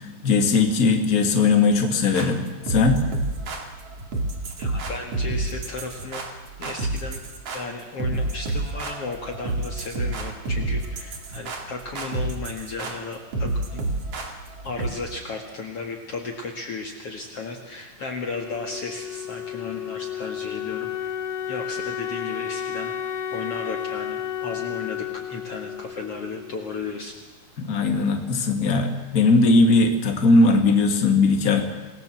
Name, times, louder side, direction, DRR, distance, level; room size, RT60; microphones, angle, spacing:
voice 1, 0.2-3.0 27.6-31.6, left 3 dB, 30° left, 4 dB, 2.6 m, -19 dB
sound 1, 2.1-14.9, right 2 dB, 50° right, 3.3 m, -29 dB
voice 2, 4.6-6.2 6.6-7.2 7.5-13.8 14.6-21.2 21.5-22.9 23.3-27.1, left 3 dB, 50° left, 2 dB, 2.6 m, -34 dB
Wind instrument woodwind instrument, 18.3-27.0, left 9 dB, 80° left, 2.9 m, -32 dB
27.5 x 19.0 x 7.6 m, 1.2 s
omnidirectional pair, 3.8 m